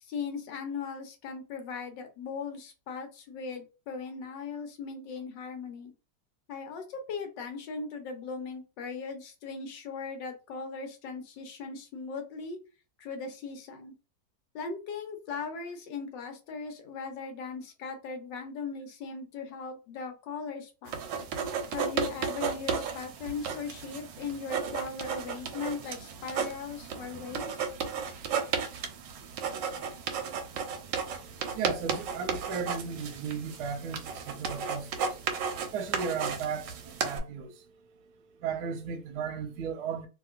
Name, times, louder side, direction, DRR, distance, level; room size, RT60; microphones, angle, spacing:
voice 1, 0.0-5.9 6.5-12.6 13.0-13.9 14.5-21.0 21.7-27.6, left 5 dB, 85° left, 1.4 m, -38 dB
sound 1, 20.9-37.2, right 6 dB, 90° right, 1.3 m, -34 dB
voice 2, 30.8-40.1, right 6 dB, 70° right, 1.1 m, -36 dB
2.9 x 2.8 x 2.4 m
omnidirectional pair, 1.9 m